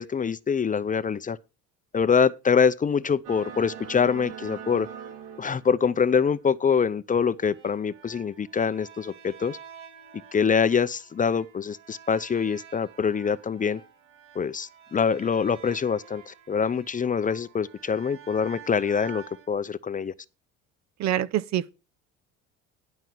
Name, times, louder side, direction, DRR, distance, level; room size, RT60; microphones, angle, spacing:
voice 1, 0.0-1.4 1.9-4.9 5.4-9.6 10.3-13.8 14.4-20.1, left 6 dB, 25° left, 0.5 m, -25 dB
sound 1, 3.2-6.4 7.3-19.5, right 8 dB, 75° right, 1.8 m, -46 dB
voice 2, 21.0-21.7, right 12 dB, 55° right, 0.8 m, -25 dB
11.5 x 5.3 x 6.0 m
supercardioid pair, 95°, 32 cm